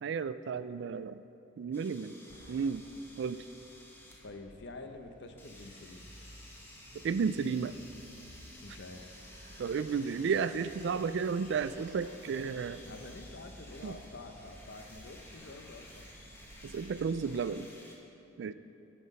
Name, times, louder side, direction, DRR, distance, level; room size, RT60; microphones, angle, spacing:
voice 1, 0.0-1.2 1.6-2.2 2.5-2.9 3.2-3.4 7.0-7.7 9.6-12.8 13.8-14.0 16.6-17.7 18.4-18.5, right 6 dB, 60° right, 13 dB, 0.3 m, -33 dB
sound 1, 1.7-4.3 5.4-18.0, left 1 dB, 10° left, 1.1 m, -54 dB
sound 2, 2.3-17.8, right 1 dB, 40° right, 0.7 m, -55 dB
voice 2, 4.2-6.1 8.6-9.2 12.9-16.1, left 2 dB, 60° left, 6 dB, 0.7 m, -48 dB
10.0 x 7.5 x 5.3 m, 3.0 s
head